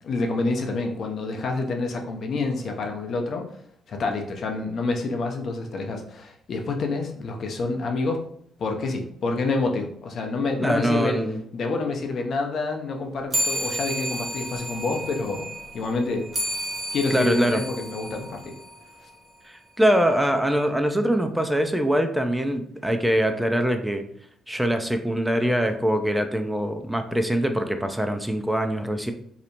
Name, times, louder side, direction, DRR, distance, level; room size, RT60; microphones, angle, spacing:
voice 1, 0.0-3.5 3.9-8.2 8.6-11.2 11.5-15.5 15.7-16.3 16.9-18.5, left 3 dB, 60° left, 3 dB, 0.4 m, -27 dB
voice 2, 10.6-11.4 17.1-17.6 19.4-24.0 24.5-29.1, equal, 10° right, 7 dB, 0.4 m, -23 dB
sound 1, 13.3-19.1, equal, 45° right, 0.7 m, -32 dB
2.8 x 2.0 x 2.7 m, 0.65 s
hypercardioid pair, 45°, 0 cm